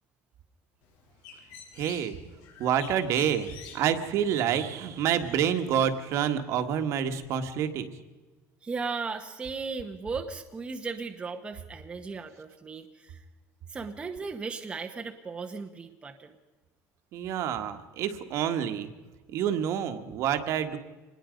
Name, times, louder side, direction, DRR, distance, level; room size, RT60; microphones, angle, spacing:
Bird, 0.8-6.2, left 6 dB, 80° left, 6.3 m, -50 dB
voice 1, 1.7-2.2 2.6-3.5 3.7-7.9 17.1-18.9 19.3-20.8, right 9 dB, 50° right, 8 dB, 1.6 m, -28 dB
voice 2, 8.6-13.2 13.7-16.3, right 4 dB, 15° right, 4 dB, 1.0 m, -36 dB
25.0 x 20.5 x 5.2 m, 1.2 s
cardioid pair, 175°, 6 cm